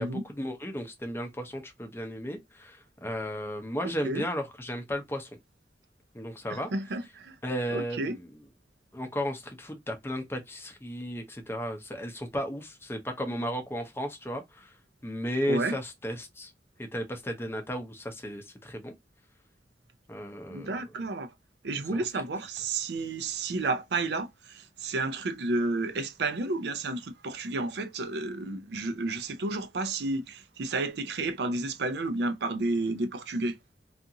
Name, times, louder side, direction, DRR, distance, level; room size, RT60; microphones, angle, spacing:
voice 1, 0.0-5.3 6.1-6.7 7.4-8.3 8.9-14.7 15.0-16.5 16.8-18.9 20.1-20.8 21.9-22.0, equal, 15° left, 0.6 m, -34 dB
voice 2, 3.8-4.2 6.5-7.4 7.7-8.2 15.5-15.8 20.5-21.3 21.6-33.6, right 2 dB, 70° right, 0.5 m, -31 dB
2.5 x 2.4 x 2.7 m
head